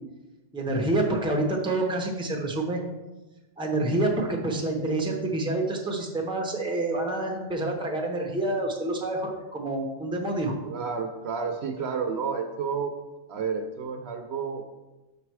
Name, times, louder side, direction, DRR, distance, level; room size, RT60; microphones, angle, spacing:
voice 1, 0.5-2.8 3.6-10.5, right 2 dB, 5° right, 1 dB, 0.8 m, -27 dB
voice 2, 10.6-12.9 13.3-14.6, right 5 dB, 65° right, 5 dB, 0.8 m, -30 dB
5.8 x 5.3 x 4.7 m, 1.1 s
omnidirectional pair, 1.3 m